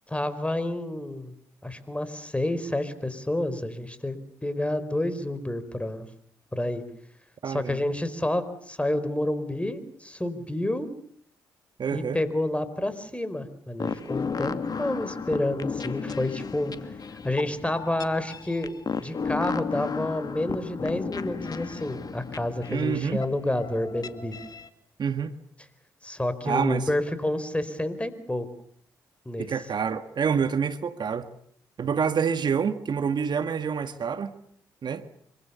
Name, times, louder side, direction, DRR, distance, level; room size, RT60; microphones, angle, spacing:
voice 1, 0.1-1.3 1.6-4.2 4.4-6.1 6.5-6.8 7.5-10.9 11.9-16.9 17.2-18.7 19.0-24.4 26.0-28.5 29.2-29.5, left 1 dB, 15° left, 13 dB, 4.7 m, -29 dB
voice 2, 7.4-7.8 11.8-12.2 22.7-23.2 25.0-25.3 26.4-26.9 29.4-31.3 31.8-34.3 34.8-35.1, right 6 dB, 55° right, 10 dB, 1.8 m, -27 dB
sound 1, 13.8-24.7, left 5 dB, 45° left, 2.3 m, -34 dB
26.5 x 25.0 x 7.0 m, 0.62 s
hypercardioid pair, 45°, 9 cm